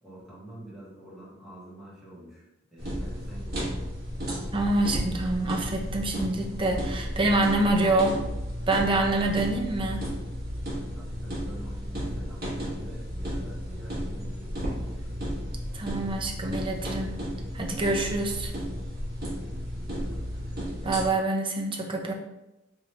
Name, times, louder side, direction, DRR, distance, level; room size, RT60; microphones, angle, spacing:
voice 1, 0.0-2.5 2.7-3.8 10.9-15.2 19.3-20.9, right 1 dB, ahead, -8 dB, 1.3 m, -47 dB
sound 1, 2.8-21.1, equal, 55° right, 1.4 m, -33 dB
voice 2, 4.5-8.2 8.7-10.0 15.7-17.2 17.5-18.5 20.8-22.1, right 2 dB, 25° right, 1 dB, 0.5 m, -26 dB
3.7 x 3.1 x 3.2 m, 0.96 s
head